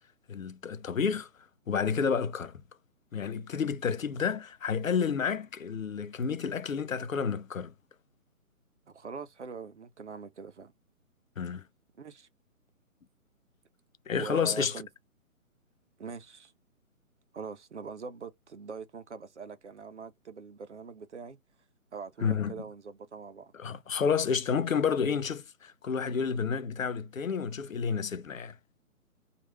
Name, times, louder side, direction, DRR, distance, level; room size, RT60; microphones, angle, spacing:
voice 1, 0.3-1.3 1.7-2.6 3.1-7.7 11.4-11.6 14.1-14.8 22.2-22.5 23.5-28.6, left 6 dB, 65° left, 0.6 m, -30 dB
voice 2, 8.9-10.7 12.0-12.3 14.2-14.9 16.0-16.5 17.3-21.4 21.9-23.5, right 5 dB, 55° right, 0.6 m, -43 dB
3.1 x 2.4 x 2.8 m
figure-of-eight pair, 140°, 43 cm